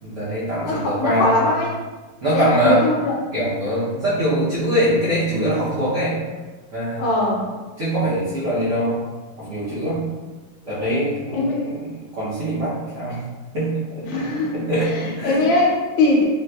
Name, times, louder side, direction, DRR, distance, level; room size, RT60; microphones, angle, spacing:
voice 1, 0.0-1.4 2.2-2.9 3.3-6.2 6.7-7.0 7.8-9.0 9.4-10.1 10.7-11.9 12.1-13.2 13.5-15.5, right 1 dB, 80° right, -10 dB, 0.7 m, -23 dB
voice 2, 0.6-1.8 2.3-3.1 7.0-7.5 11.3-11.7 14.0-16.2, left 2 dB, 80° left, -2 dB, 1.5 m, -21 dB
3.9 x 2.5 x 2.2 m, 1.3 s
omnidirectional pair, 2.4 m